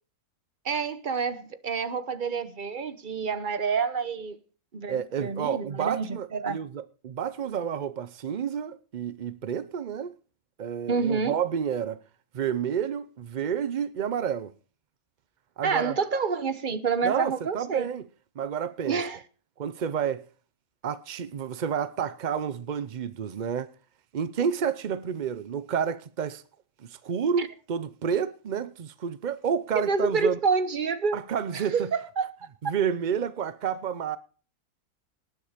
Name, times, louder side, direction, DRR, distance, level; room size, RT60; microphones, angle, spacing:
voice 1, 0.6-4.4 4.7-6.6 10.9-11.4 15.6-17.9 18.9-19.2 27.4-27.5 29.9-31.2 31.5-32.3 32.6-32.7, right 5 dB, 40° right, 0.9 m, -28 dB
voice 2, 4.9-10.1 10.6-12.0 12.3-14.5 15.6-16.0 17.0-18.1 18.4-19.0 19.6-20.3 20.8-23.7 24.1-26.4 26.8-30.4 31.1-31.9 32.6-34.2, right 7 dB, 60° right, 0.4 m, -30 dB
19.0 x 7.1 x 5.0 m
omnidirectional pair, 1.6 m